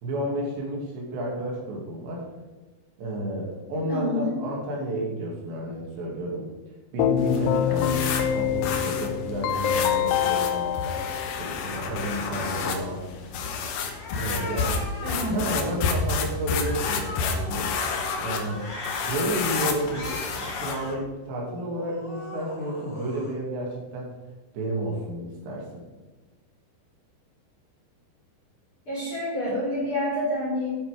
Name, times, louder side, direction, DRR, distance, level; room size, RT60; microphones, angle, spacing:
voice 1, 0.0-2.3 3.0-6.5 6.9-10.7 11.2-13.3 14.2-17.7 18.2-18.6 19.1-24.1 24.5-25.8, right 1 dB, 70° right, -2 dB, 4.5 m, -31 dB
voice 2, 3.9-4.3 15.0-15.4 28.9-30.7, left 1 dB, 30° left, -6 dB, 3.7 m, -28 dB
Keyboard (musical), 7.0-12.0, left 10 dB, 85° left, 3.2 m, -26 dB
sound 1, 7.2-20.9, left 5 dB, 70° left, 2.5 m, -30 dB
Cat, 9.7-11.1 11.6-13.0 13.6-15.9 16.4-19.3 19.8-21.0 21.5-23.3, left 2 dB, 10° right, 1.8 m, -39 dB
9.6 x 8.3 x 5.0 m, 1.2 s
omnidirectional pair, 5.3 m